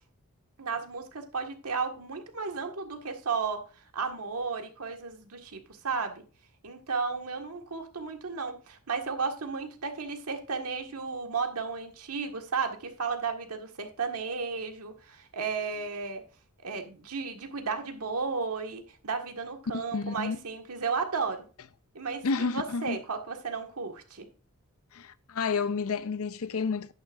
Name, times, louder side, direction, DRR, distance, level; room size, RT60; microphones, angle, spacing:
voice 1, 0.6-3.6 3.9-6.2 6.6-16.2 16.6-21.4 21.9-24.3, right 5 dB, 80° right, 1.7 m, -34 dB
voice 2, 19.7-20.4 22.2-23.0 24.9-26.9, left 4 dB, 65° left, 0.6 m, -30 dB
11.0 x 9.1 x 2.5 m
head